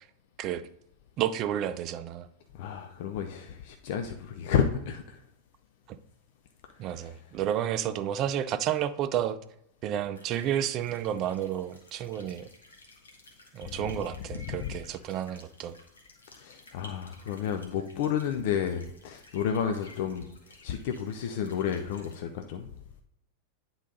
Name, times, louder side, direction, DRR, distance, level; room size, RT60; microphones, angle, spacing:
voice 1, 1.2-2.3 5.9-6.0 6.8-9.4 9.8-12.5 13.5-15.8, right 10 dB, 35° right, 0.4 m, -31 dB
voice 2, 2.5-5.2 6.8-7.2 13.6-14.8 16.3-20.3 20.6-22.7, left 8 dB, 50° left, 0.5 m, -31 dB
sound 1, 10.1-22.2, left 2 dB, 70° left, 1.3 m, -55 dB
9.3 x 3.9 x 4.0 m
figure-of-eight pair, 90°, 0 cm